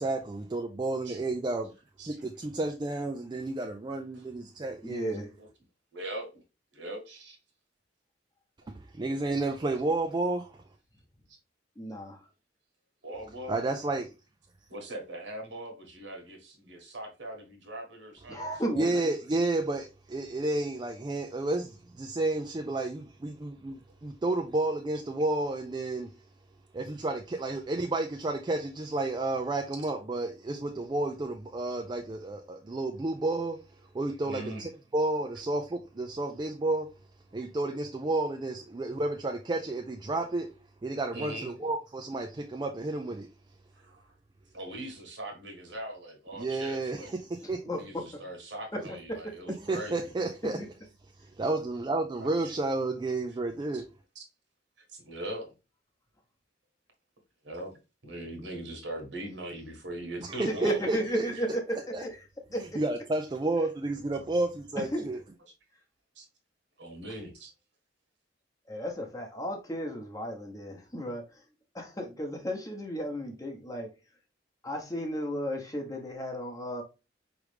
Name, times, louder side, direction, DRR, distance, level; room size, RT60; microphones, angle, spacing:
voice 1, 0.0-1.7 2.1-5.2 8.7-10.6 13.5-14.1 18.3-18.4 18.8-26.1 26.7-33.6 33.9-36.9 37.3-40.5 40.8-43.3 46.4-47.6 49.6-50.6 51.2-53.9 60.2-61.4 61.9-62.0 62.6-65.2, right 2 dB, 25° right, 0.4 m, -31 dB
voice 2, 4.8-5.3 11.8-12.2 18.3-19.0 47.7-47.8 48.7-49.2 50.6-50.7 60.6-62.2 62.5-62.6 64.8-65.0 68.7-71.2 71.7-73.9 74.6-76.8, equal, 20° left, 0.9 m, -34 dB
voice 3, 5.9-6.4 6.7-7.4 11.3-11.4 13.0-13.6 14.7-18.4 34.2-34.6 41.1-41.7 43.7-44.1 44.5-47.1 47.7-50.1 50.6-50.7 52.2-52.6 53.7-53.8 54.1-54.2 54.9-55.5 57.4-57.7 58.0-60.9 61.3-61.4 66.1-66.3 66.8-67.5, right 1 dB, 75° right, 1.5 m, -41 dB
5.0 x 3.2 x 3.2 m
head